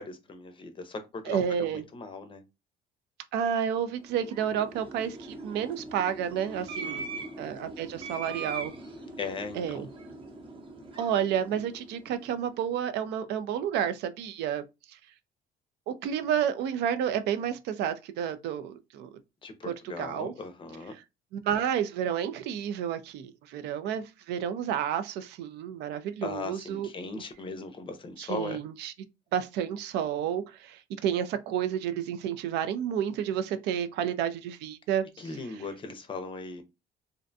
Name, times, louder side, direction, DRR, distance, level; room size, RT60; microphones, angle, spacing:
voice 1, 0.0-2.4 6.5-7.3 9.2-9.9 19.4-20.9 26.2-28.6 35.2-36.6, left 3 dB, 30° left, 0.5 m, -39 dB
voice 2, 1.3-1.8 3.3-7.0 7.4-8.7 9.6-9.9 11.0-15.0 15.9-19.1 19.7-20.3 20.9-21.0 21.3-27.2 28.2-28.9 29.3-35.3, right 9 dB, 80° right, 0.4 m, -31 dB
sound 1, 4.0-12.5, right 3 dB, 30° right, 0.7 m, -42 dB
2.5 x 2.1 x 2.6 m
cardioid pair, 110°, 17 cm